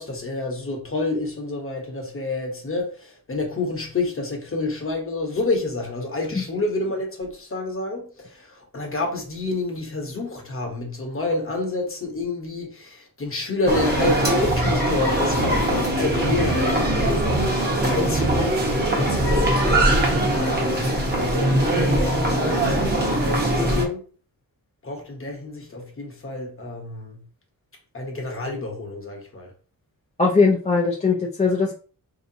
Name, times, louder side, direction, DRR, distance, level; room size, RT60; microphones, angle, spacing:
voice 1, 0.0-24.1 24.8-27.2 27.9-29.5, left 2 dB, 35° left, 1.0 m, -29 dB
sound 1, 13.7-23.8, right 1 dB, 30° right, 1.1 m, -21 dB
voice 2, 30.2-31.7, left 4 dB, 20° left, 0.5 m, -19 dB
4.5 x 2.8 x 2.7 m
wide cardioid pair, 140°, 35 cm